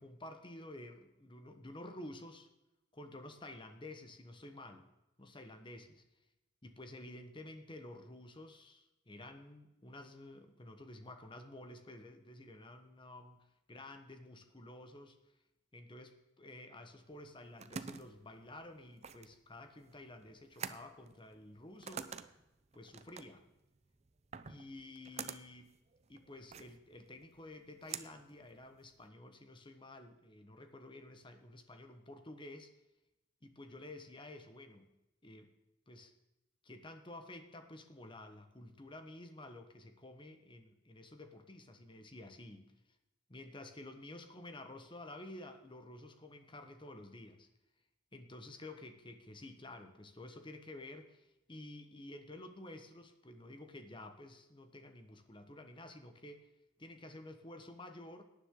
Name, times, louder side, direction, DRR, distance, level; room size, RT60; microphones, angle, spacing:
voice 1, 0.0-2.5 2.9-4.9 5.2-6.0 6.6-15.2 15.7-22.2 22.7-23.5 24.5-25.7 26.1-32.7 33.4-34.9 35.2-35.5 35.9-36.1 36.6-42.7 43.3-47.5 48.1-56.5 56.8-58.2, left 1 dB, 25° left, 6 dB, 1.2 m, -51 dB
sound 1, 17.2-29.1, right 6 dB, 35° right, 0.6 m, -49 dB
18.0 x 10.0 x 3.8 m, 0.94 s
head